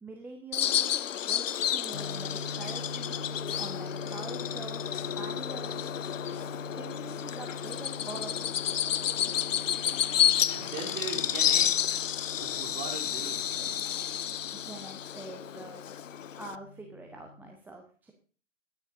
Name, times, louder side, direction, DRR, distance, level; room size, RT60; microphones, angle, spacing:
voice 1, 0.0-3.2 3.6-4.8 5.2-6.0 6.7-8.5 14.5-15.8 16.4-18.1, right 3 dB, 5° right, 1 dB, 0.9 m, -45 dB
Bird vocalization bird call bird song, 0.5-16.6, left 10 dB, 70° left, 0.5 m, -31 dB
sound 1, 1.9-17.5, left 2 dB, 85° left, 0.9 m, -44 dB
voice 2, 10.5-12.0 12.3-13.8, right 5 dB, 25° right, -1 dB, 3.3 m, -40 dB
22.0 x 9.8 x 2.7 m, 0.39 s
figure-of-eight pair, 115°, 40 cm